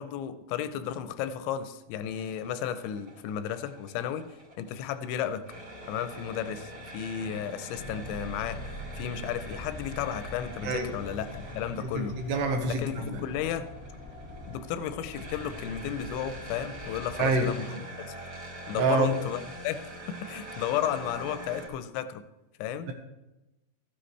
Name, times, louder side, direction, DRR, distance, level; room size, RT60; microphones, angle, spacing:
voice 1, 0.0-4.2 4.6-5.4 5.9-8.6 9.0-12.2 12.7-13.7 14.5-17.8 18.7-19.8 20.1-22.2 22.6-22.9, left 9 dB, 85° left, 11 dB, 2.9 m, -33 dB
sound 1, 2.1-21.7, right 1 dB, 45° right, 1.3 m, -44 dB
sound 2, 7.7-17.4, equal, 20° left, 0.7 m, -44 dB
voice 2, 11.8-13.2 17.2-17.5 18.8-19.1, right 3 dB, 75° right, 4 dB, 3.1 m, -27 dB
13.5 x 10.0 x 3.3 m, 0.98 s
omnidirectional pair, 5.2 m